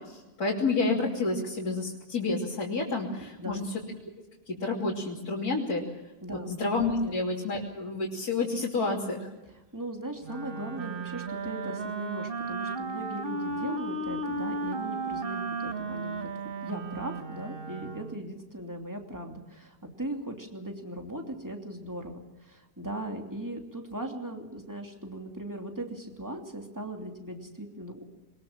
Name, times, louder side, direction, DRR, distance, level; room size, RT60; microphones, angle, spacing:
voice 1, 0.4-3.6 4.5-5.8 6.3-9.3, left 3 dB, 70° left, -5 dB, 3.6 m, -29 dB
voice 2, 3.4-3.7 6.2-6.5 6.9-7.2 9.5-28.0, right 1 dB, 10° right, 2 dB, 2.9 m, -38 dB
Wind instrument woodwind instrument, 10.2-18.3, right 3 dB, 40° right, 1.2 m, -35 dB
22.0 x 21.0 x 7.4 m, 1.1 s
omnidirectional pair, 1.7 m